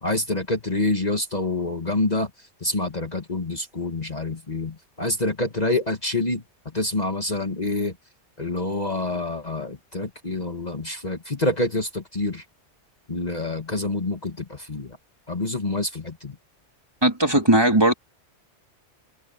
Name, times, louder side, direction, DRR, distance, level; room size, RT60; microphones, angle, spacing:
voice 1, 0.0-6.4 6.7-8.0 8.4-12.5 13.1-15.0 15.3-16.4, left 2 dB, 35° left, 1.9 m, -27 dB
voice 2, 17.0-17.9, right 1 dB, 20° right, 2.9 m, -18 dB
omnidirectional pair, 1.3 m